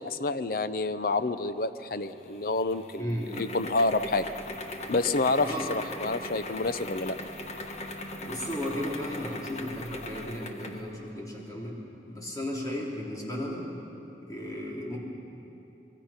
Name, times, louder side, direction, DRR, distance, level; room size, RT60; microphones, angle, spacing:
voice 1, 0.0-4.2 4.9-7.2, left 3 dB, 55° left, 12 dB, 0.7 m, -28 dB
sound 1, 2.1-10.9, left 2 dB, 40° left, 1.3 m, -40 dB
voice 2, 3.0-3.4 5.4-5.7 8.2-11.8 12.0-13.7 14.2-15.0, left 1 dB, 20° left, -3 dB, 3.6 m, -35 dB
25.5 x 22.5 x 5.9 m, 3.0 s
head